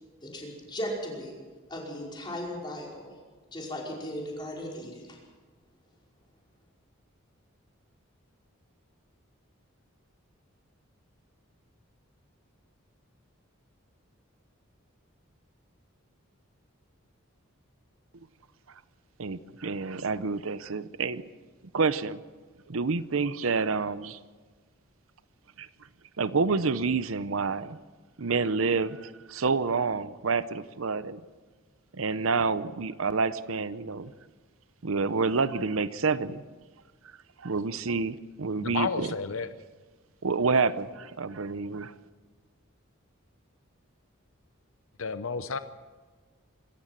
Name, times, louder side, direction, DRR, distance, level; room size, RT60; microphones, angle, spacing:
voice 1, 0.2-1.3 1.7-3.1 3.5-5.2, equal, 20° left, -2 dB, 5.2 m, -37 dB
voice 2, 19.2-21.2 21.7-22.2 22.7-24.2 25.6-25.7 26.2-27.8 28.2-31.2 31.9-34.1 34.8-36.4 37.4-39.1 40.2-41.9, right 4 dB, 75° right, 14 dB, 0.7 m, -28 dB
voice 3, 38.6-39.5 45.0-45.6, left 5 dB, 75° left, 11 dB, 0.7 m, -31 dB
26.0 x 14.0 x 7.4 m, 1.4 s
head